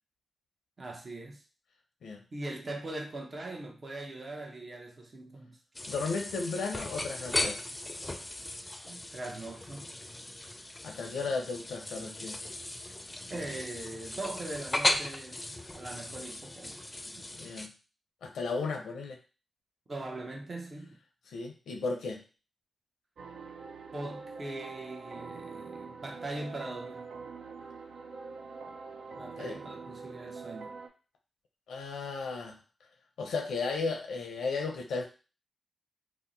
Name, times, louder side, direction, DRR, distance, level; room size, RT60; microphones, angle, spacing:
voice 1, 0.8-1.4 2.3-5.6 8.8-9.8 13.3-15.4 15.7-16.9 17.2-17.3 19.9-21.0 23.9-27.1 29.2-30.7, right 2 dB, 50° right, 0.7 m, -41 dB
sound 1, 5.7-17.7, left 1 dB, 25° left, 0.4 m, -37 dB
voice 2, 5.9-7.6 10.8-12.4 17.1-17.7 18.2-19.2 21.3-22.2 29.4-29.6 31.7-32.6 33.2-35.1, left 4 dB, 90° left, 0.5 m, -35 dB
sound 2, 23.2-30.9, right 4 dB, 85° right, 0.4 m, -44 dB
2.8 x 2.1 x 3.8 m
cardioid pair, 45°, 0 cm